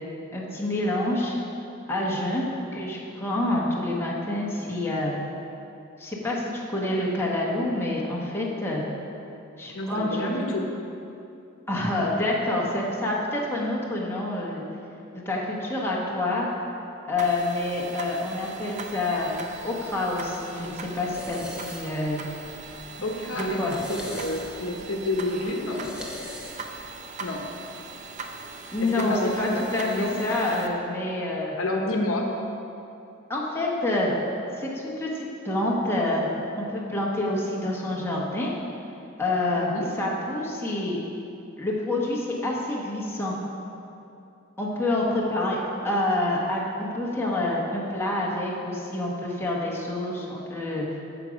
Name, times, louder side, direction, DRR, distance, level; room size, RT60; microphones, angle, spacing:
voice 1, 0.3-1.4 1.9-5.1 6.0-8.8 9.6-10.3 11.7-14.6 15.2-16.5 17.1-19.4 19.6-22.2 23.3-23.8 28.7-31.5 33.3-34.1 34.6-36.3 36.6-38.5 39.2-39.7 40.0-41.0 41.6-43.4 44.6-45.6 45.8-50.8, left 1 dB, 10° left, -4 dB, 1.3 m, -27 dB
voice 2, 9.7-10.6 23.0-23.6 23.9-25.9 27.2-27.4 28.8-30.2 31.6-32.3 39.7-39.9, left 1 dB, 70° left, 1 dB, 1.0 m, -29 dB
sound 1, 17.2-30.7, right 3 dB, 35° right, 0.6 m, -40 dB
sound 2, 19.2-26.9, left 1 dB, 5° right, 1.0 m, -43 dB
9.1 x 7.1 x 5.2 m, 2.8 s
head